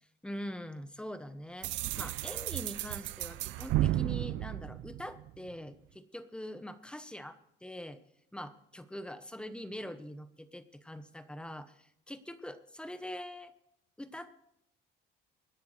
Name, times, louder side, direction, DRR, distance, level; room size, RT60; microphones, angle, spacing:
voice 1, 0.2-8.0 8.3-13.5 14.0-14.3, left 1 dB, 5° left, 11 dB, 0.9 m, -43 dB
sound 1, 1.6-5.5, right 15 dB, 85° right, 0.5 m, -33 dB
24.5 x 10.0 x 3.3 m, 0.75 s
cardioid pair, 120°, 19 cm